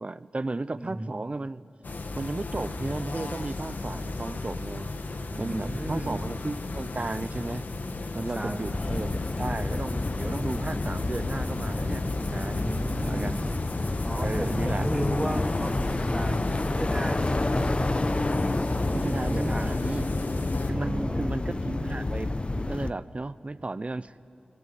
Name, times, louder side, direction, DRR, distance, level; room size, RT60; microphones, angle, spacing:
voice 1, 0.0-1.6 2.2-4.9 5.4-7.6 8.1-13.4 14.1-15.0 18.9-20.1 20.7-24.1, right 2 dB, 40° right, 16 dB, 0.7 m, -34 dB
sound 1, 1.8-20.7, left 3 dB, 70° left, 1.5 m, -35 dB
voice 2, 5.3-6.2 8.3-8.6 12.6-13.4 14.0-16.4 16.7-18.0 18.7-19.0 19.3-19.8 20.7-21.4, right 1 dB, 15° right, 2 dB, 3.2 m, -34 dB
sound 2, 8.7-22.9, left 2 dB, 35° left, 0.9 m, -29 dB
26.0 x 25.0 x 7.8 m, 2.5 s
cardioid pair, 45°, 3 cm